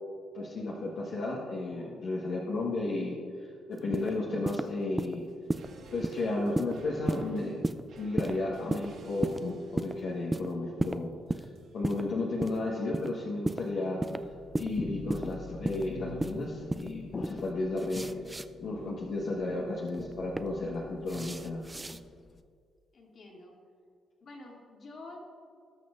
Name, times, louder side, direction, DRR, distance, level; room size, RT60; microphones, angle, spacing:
voice 1, 0.3-5.3 5.9-7.6 8.0-11.5 11.7-14.3 14.6-18.1 18.6-21.6, left 2 dB, 70° left, -4 dB, 1.3 m, -33 dB
sound 1, 3.8-4.1 4.4-4.7 5.0-5.2 5.5-5.7 6.0-6.2 6.5-6.7 7.1-7.3 7.6-7.8 8.2-8.3 8.7-8.9 9.2-9.4 9.8-9.9 10.3-10.5 10.8-11.0 11.3-11.5 11.8-12.0 12.4-12.6 12.9-13.1 13.4-13.6 14.0-14.2 14.5-14.7 15.1-15.3 15.6-15.8 16.2-16.4 16.7-16.9 17.2-17.4 17.8-18.5 19.9-20.4 21.1-22.0, right 2 dB, 15° right, 0.4 m, -32 dB
sound 2, 5.2-14.6 14.9-15.0, right 2 dB, 75° right, 1.6 m, -52 dB
sound 3, 14.2-22.4, left 4 dB, 40° left, 0.6 m, -45 dB
voice 2, 22.9-23.6 24.2-25.2, left 2 dB, 55° left, -2 dB, 2.3 m, -48 dB
19.0 x 6.3 x 2.5 m, 2.2 s
cardioid pair, 90°, 0 cm